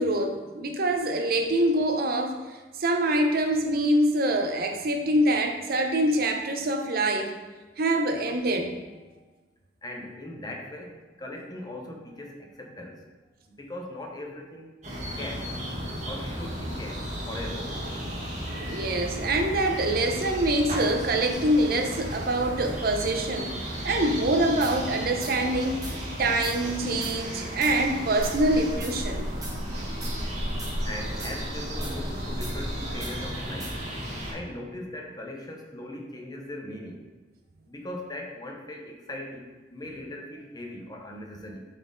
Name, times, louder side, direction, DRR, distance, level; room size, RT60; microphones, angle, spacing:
voice 1, 0.0-7.4 7.8-8.8 18.6-23.6 23.8-29.3, right 1 dB, 55° right, 4 dB, 0.6 m, -25 dB
voice 2, 9.8-14.7 15.2-15.5 16.0-17.8 30.8-33.8 34.3-37.1 37.7-41.7, left 1 dB, 25° left, 0 dB, 0.8 m, -39 dB
sound 1, 14.8-34.3, equal, 40° right, 1.6 m, -34 dB
sound 2, 24.6-24.8 25.2-25.3 25.8-26.0 26.4-26.6 27.0-27.2 27.6-27.7 28.2-28.4 28.8-28.9 29.4-29.6 30.0-30.1 30.6-30.7 31.2-31.3 31.8-31.9 32.4-32.5 33.0-33.1 33.6-33.7, right 2 dB, 20° right, 1.2 m, -40 dB
6.7 x 4.2 x 3.8 m, 1.3 s
head